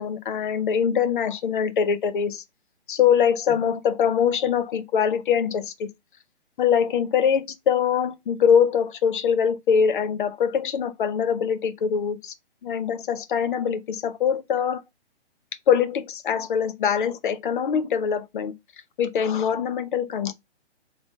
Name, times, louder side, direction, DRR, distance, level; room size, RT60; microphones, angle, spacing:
voice 1, 0.0-2.4 2.9-5.9 6.6-12.3 12.6-14.8 15.7-18.5 19.0-20.3, left 7 dB, 45° left, 0.8 m, -23 dB
3.9 x 3.6 x 3.6 m
hypercardioid pair, 140°, 35 cm